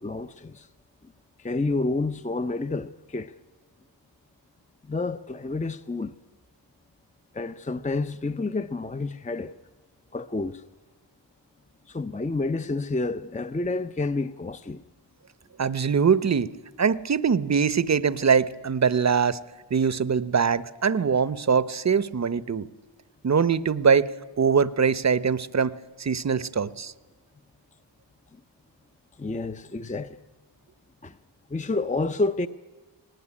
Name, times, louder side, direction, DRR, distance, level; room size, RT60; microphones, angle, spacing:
voice 1, 0.0-0.7 1.0-1.1 1.4-3.3 4.8-6.2 7.3-9.5 10.1-10.6 11.9-14.8 29.2-30.2 31.0-31.1 31.5-32.5, left 3 dB, 15° left, 0.6 m, -29 dB
voice 2, 15.6-16.5 16.8-19.4 19.7-22.7 23.2-24.1 24.4-26.9, right 6 dB, 35° right, 0.8 m, -22 dB
19.0 x 18.5 x 9.8 m
wide cardioid pair, 65°, 45 cm